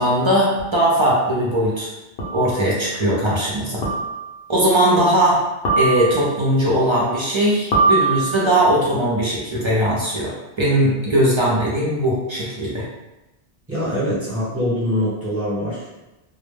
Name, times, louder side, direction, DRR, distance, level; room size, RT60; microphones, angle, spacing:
voice 1, 0.0-1.9 2.3-3.8 4.5-5.4 5.8-12.8, right 1 dB, 40° right, -6 dB, 0.4 m, -19 dB
sound 1, 0.6-0.7 2.2-2.6 3.8-4.4 5.6-6.4 7.7-8.6, right 3 dB, 65° left, 0.8 m, -21 dB
voice 2, 13.7-16.0, equal, 15° right, -10 dB, 1.0 m, -23 dB
2.1 x 2.1 x 3.2 m, 1.0 s
omnidirectional pair, 1.1 m